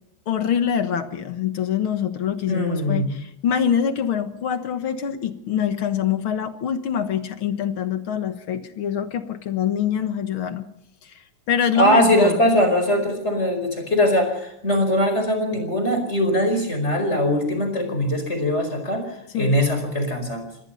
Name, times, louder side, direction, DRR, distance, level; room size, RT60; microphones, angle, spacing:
voice 1, 0.3-10.6 11.0-11.1 11.5-12.4 19.3-19.5, left 8 dB, 50° left, 10 dB, 1.8 m, -24 dB
voice 2, 2.5-3.1 11.7-20.4, equal, 20° left, 6 dB, 4.8 m, -21 dB
25.0 x 19.0 x 5.6 m, 0.78 s
omnidirectional pair, 3.5 m